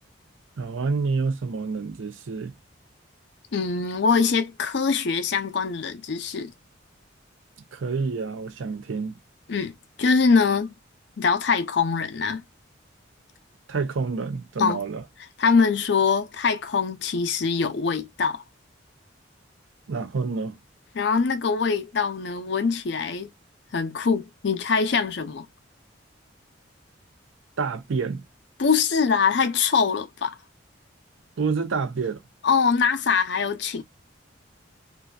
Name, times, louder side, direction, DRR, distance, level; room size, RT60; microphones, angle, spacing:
voice 1, 0.6-2.6 7.7-9.2 13.7-15.0 19.9-20.6 27.6-28.2 31.4-32.2, right 4 dB, 80° right, 0.5 m, -28 dB
voice 2, 3.5-6.5 9.5-9.7 10.0-10.7 11.2-12.4 14.6-14.8 15.4-18.4 20.9-23.3 23.7-25.5 28.6-30.4 32.4-33.8, left 5 dB, 60° left, 0.5 m, -23 dB
2.6 x 2.2 x 2.2 m
head